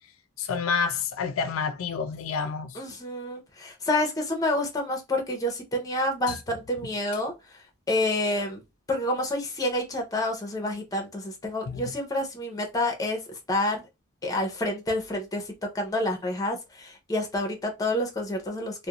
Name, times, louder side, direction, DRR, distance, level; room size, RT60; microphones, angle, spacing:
voice 1, 0.4-2.8 11.7-11.9, left 5 dB, 75° left, 0.4 m, -29 dB
voice 2, 2.7-7.3 7.9-8.6 8.9-13.2 13.5-13.8 14.2-18.9, left 1 dB, 15° left, 0.6 m, -28 dB
2.4 x 2.1 x 2.8 m
head